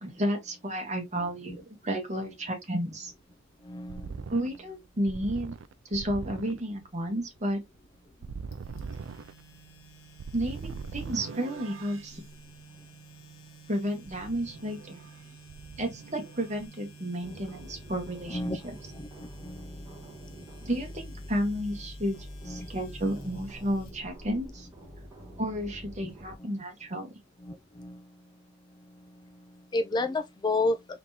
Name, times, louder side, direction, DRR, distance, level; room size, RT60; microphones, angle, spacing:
voice 1, 0.0-3.1 4.3-5.5 5.9-7.6 10.3-12.2 13.7-15.1 15.8-18.8 20.6-24.7 25.4-27.1, equal, 35° right, 1.4 m, -32 dB
sound 1, 3.1-12.2 14.1-15.2 15.5-16.7, right 5 dB, 75° right, 0.4 m, -42 dB
voice 2, 3.6-4.2 18.3-18.6 19.0-19.9 22.5-22.7 25.2-25.3 27.4-28.0 29.7-30.8, left 2 dB, 20° left, 0.3 m, -31 dB
sound 2, 8.5-24.5, right 2 dB, 85° left, 1.3 m, -51 dB
sound 3, 17.2-26.4, left 1 dB, 15° right, 1.7 m, -46 dB
3.9 x 3.5 x 2.8 m
head